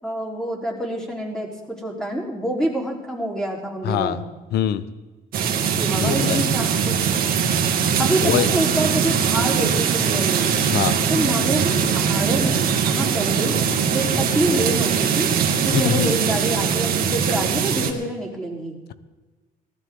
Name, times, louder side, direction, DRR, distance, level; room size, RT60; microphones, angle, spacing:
voice 1, 0.0-4.2 5.8-6.9 8.0-10.5 11.1-13.6 13.9-15.3 15.6-18.8, right 1 dB, 5° left, -1 dB, 3.9 m, -27 dB
voice 2, 3.8-4.2 4.5-4.8 6.0-6.4 8.2-8.5 10.7-11.0 15.7-16.1, left 11 dB, 75° left, 14 dB, 0.8 m, -22 dB
sound 1, 5.3-17.9, right 7 dB, 60° right, 2.0 m, -21 dB
19.5 x 13.0 x 3.8 m, 1.2 s
cardioid pair, 110°, 17 cm